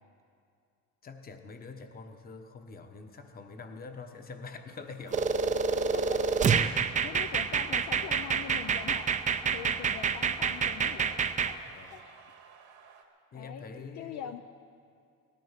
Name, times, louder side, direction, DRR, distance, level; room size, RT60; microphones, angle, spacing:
voice 1, 1.0-5.3 11.7-11.9 13.3-14.4, left 4 dB, 30° left, 7 dB, 1.2 m, -45 dB
sound 1, 3.1-13.0, right 6 dB, 80° right, 2.0 m, -52 dB
sound 2, 5.1-11.5, right 6 dB, 25° right, 0.5 m, -27 dB
voice 2, 5.8-9.1 9.5-11.2 11.4-12.0 13.3-14.4, left 10 dB, 60° left, 7 dB, 0.6 m, -43 dB
18.0 x 13.0 x 5.8 m, 2.3 s
cardioid pair, 140°, 31 cm